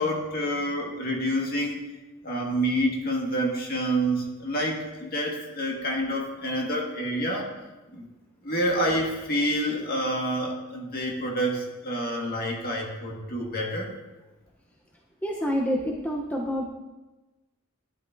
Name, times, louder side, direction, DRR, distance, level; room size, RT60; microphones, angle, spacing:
voice 1, 0.0-1.8 2.2-7.5 7.9-8.1 8.4-13.9, equal, 45° left, 0 dB, 1.8 m, -28 dB
voice 2, 15.2-16.6, equal, 5° left, -1 dB, 0.8 m, -27 dB
11.0 x 11.0 x 2.6 m, 1.1 s
head